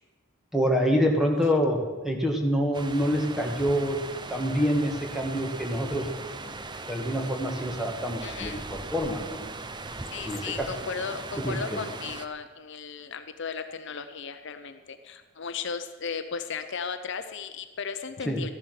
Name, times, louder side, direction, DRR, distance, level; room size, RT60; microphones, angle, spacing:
voice 1, 0.5-6.1 6.9-9.4 10.3-10.7 11.4-11.6 18.3-18.4, equal, ahead, 1 dB, 1.8 m, -26 dB
sound 1, 2.7-12.3, right 3 dB, 20° right, 0.6 m, -39 dB
voice 2, 8.2-8.6 10.1-18.5, left 6 dB, 60° left, 9 dB, 0.8 m, -36 dB
13.5 x 11.0 x 6.5 m, 1.3 s
head